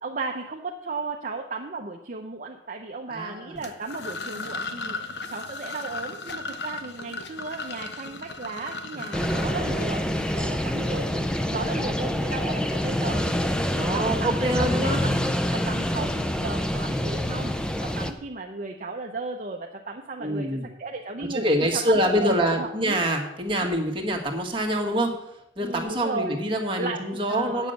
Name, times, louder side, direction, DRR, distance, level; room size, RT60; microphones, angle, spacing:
voice 1, 0.0-15.2 15.5-20.5 20.8-21.5 21.7-23.0 25.6-26.4 26.8-27.7, right 3 dB, 45° right, 2 dB, 0.7 m, -35 dB
voice 2, 3.1-3.6 8.9-9.0 10.6-11.3 13.7-15.0 20.2-20.7 21.2-25.1 25.6-27.7, equal, 25° right, 0 dB, 1.7 m, -26 dB
sound 1, 3.6-10.4, left 3 dB, 60° left, 0.9 m, -36 dB
sound 2, 9.1-18.1, equal, 5° left, 0.6 m, -26 dB
9.0 x 7.3 x 6.7 m, 0.87 s
head